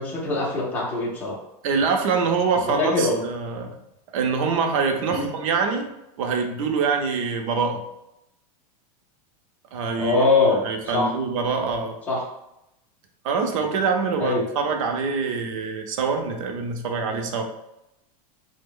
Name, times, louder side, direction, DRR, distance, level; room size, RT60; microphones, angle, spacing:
voice 1, 0.0-1.4 2.8-3.2 5.1-5.3 10.0-10.6 10.9-11.1 12.1-12.2 14.2-14.4, left 3 dB, 10° left, -4 dB, 0.5 m, -22 dB
voice 2, 1.6-3.8 4.1-5.9 6.2-7.8 9.7-10.2 10.6-12.0 13.2-17.4, right 5 dB, 60° right, 4 dB, 0.6 m, -24 dB
3.3 x 2.1 x 3.6 m, 0.87 s
supercardioid pair, 165°, 19 cm